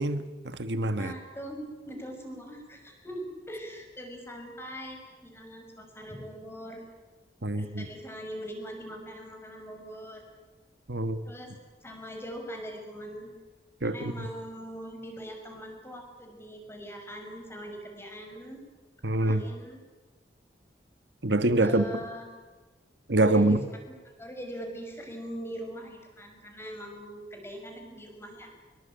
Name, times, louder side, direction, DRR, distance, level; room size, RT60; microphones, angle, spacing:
voice 1, 0.0-1.1 7.4-7.9 10.9-11.2 13.8-14.3 19.0-19.4 21.2-21.9 23.1-23.6, right 2 dB, 80° right, 10 dB, 1.5 m, -25 dB
voice 2, 0.9-6.9 7.5-10.2 11.2-11.5 11.8-13.3 13.8-18.6 19.1-19.8 21.6-22.2 23.3-23.6 24.2-28.5, equal, 15° left, 3 dB, 6.1 m, -41 dB
25.0 x 23.0 x 8.9 m, 1.3 s
head